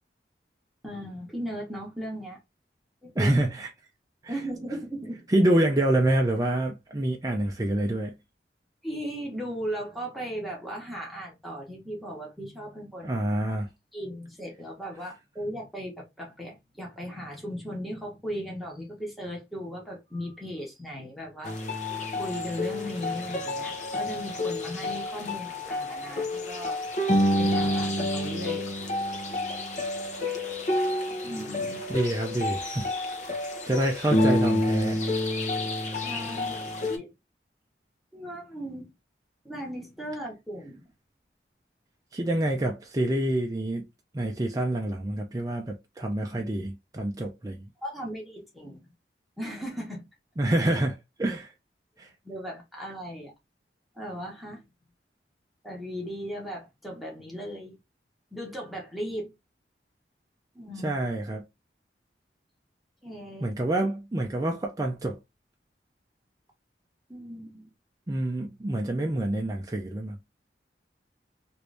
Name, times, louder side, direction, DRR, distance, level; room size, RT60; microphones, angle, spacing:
voice 1, 0.8-2.4 3.0-3.3 4.3-5.2 8.8-13.2 13.9-26.8 27.4-28.7 31.2-31.8 36.0-37.1 38.1-38.9 39.4-40.9 47.8-48.8 49.4-50.1 52.0-53.3 53.9-54.6 55.6-57.7 58.3-59.3 60.5-61.0 63.0-63.5 67.1-67.6, equal, ahead, 1.0 m, -37 dB
voice 2, 3.2-3.7 4.2-4.3 5.3-8.2 13.0-13.7 31.9-32.9 33.7-35.0 42.1-43.8 44.1-47.7 50.4-51.5 52.0-52.1 60.8-61.4 63.4-65.2 68.1-70.2, right 1 dB, 20° right, 0.4 m, -27 dB
sound 1, 21.4-37.0, left 1 dB, 40° left, 0.7 m, -29 dB
3.1 x 2.6 x 3.2 m
head